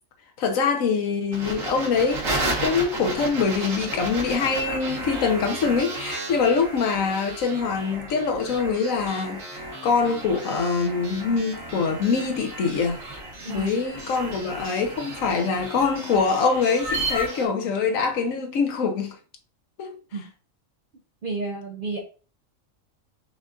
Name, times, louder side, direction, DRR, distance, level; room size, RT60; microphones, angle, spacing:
voice 1, 0.4-2.3 2.6-13.0 13.5-19.1 19.8-20.0, left 5 dB, 85° left, 1.2 m, -24 dB
sound 1, 1.3-17.4, right 2 dB, 80° right, 1.7 m, -33 dB
voice 2, 21.2-22.0, right 3 dB, 55° right, 0.7 m, -31 dB
5.5 x 3.7 x 2.4 m
omnidirectional pair, 1.4 m